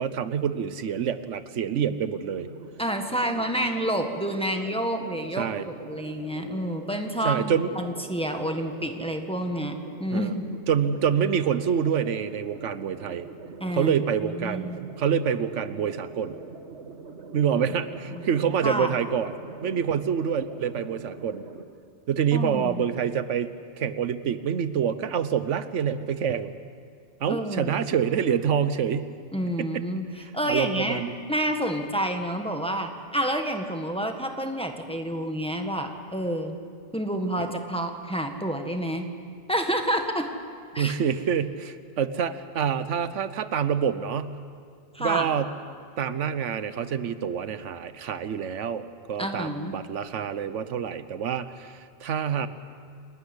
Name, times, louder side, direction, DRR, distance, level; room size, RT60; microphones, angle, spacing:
voice 1, 0.0-2.5 5.4-5.7 7.2-7.7 10.1-10.4 10.7-13.3 13.7-16.4 17.3-19.3 19.6-21.4 22.1-23.5 23.8-26.5 27.2-29.2 29.6-29.8 30.2-31.1 40.8-44.4 45.0-45.5 46.0-52.5, right 8 dB, 90° right, 13 dB, 1.2 m, -27 dB
sound 1, 2.2-21.7, right 4 dB, 70° right, 1.8 m, -43 dB
voice 2, 2.8-10.4 13.6-14.8 18.1-18.2 18.6-19.0 22.3-22.8 27.3-27.7 29.3-30.0 30.3-31.0 31.3-36.6 36.9-39.1 39.5-40.3 40.7-40.9 44.9-45.3 49.2-49.8, equal, 5° left, 4 dB, 1.6 m, -29 dB
28.0 x 13.0 x 9.8 m, 2.2 s
omnidirectional pair, 1.2 m